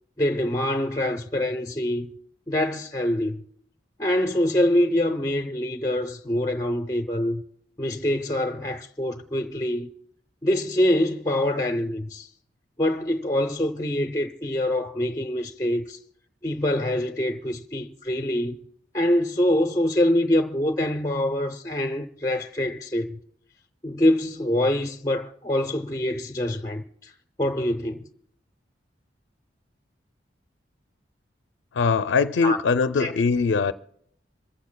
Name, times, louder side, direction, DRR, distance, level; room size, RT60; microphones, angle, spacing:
voice 1, 0.2-2.1 2.5-3.4 4.0-7.4 7.8-9.9 10.4-12.3 12.8-16.0 16.4-18.6 18.9-23.2 23.8-27.1 27.4-28.1 32.4-32.6 33.0-33.1, left 1 dB, 20° left, 0.6 m, -25 dB
voice 2, 31.7-33.7, left 4 dB, 85° left, 0.4 m, -21 dB
25.5 x 15.0 x 2.2 m
head